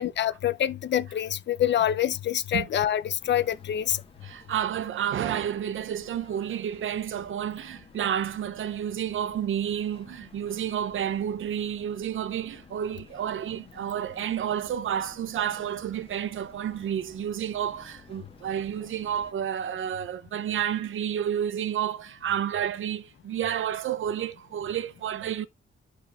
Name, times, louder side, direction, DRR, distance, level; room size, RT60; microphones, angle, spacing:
voice 1, 0.0-4.0, left 10 dB, 55° left, 0.5 m, -26 dB
sound 1, 3.2-19.3, left 3 dB, 25° left, 1.1 m, -53 dB
voice 2, 4.2-25.5, right 9 dB, 70° right, 0.5 m, -30 dB
12.5 x 4.7 x 2.3 m
wide cardioid pair, 120°, 21 cm